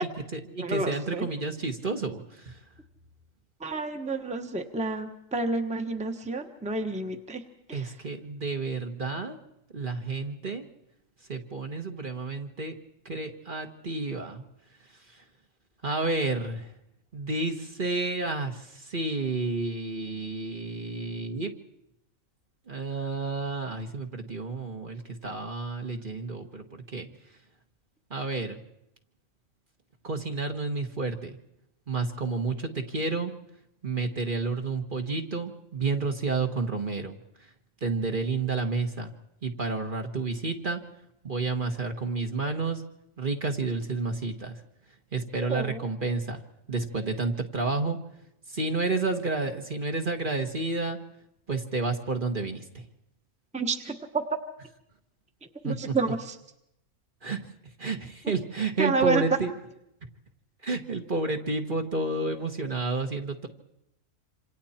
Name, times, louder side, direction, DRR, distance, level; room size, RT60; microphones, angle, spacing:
voice 1, 0.0-2.6 7.7-9.4 9.7-10.7 11.3-12.7 13.0-14.4 15.8-16.7 17.1-21.5 22.7-27.1 28.1-28.6 30.0-31.4 31.9-33.3 33.8-37.2 37.8-39.1 39.4-40.8 41.2-42.8 43.2-44.6 45.1-46.4 46.7-48.0 48.5-51.0 51.5-52.8 55.6-56.0 57.2-57.4 57.8-59.5 60.6-63.5, right 3 dB, 40° right, 4 dB, 1.6 m, -30 dB
voice 2, 0.6-1.2 3.6-7.4 7.7-7.9 45.5-45.8 53.5-54.2 55.6-56.3 58.8-59.2, right 3 dB, 5° right, 5 dB, 1.2 m, -29 dB
27.5 x 26.5 x 4.4 m, 0.82 s
omnidirectional pair, 1.4 m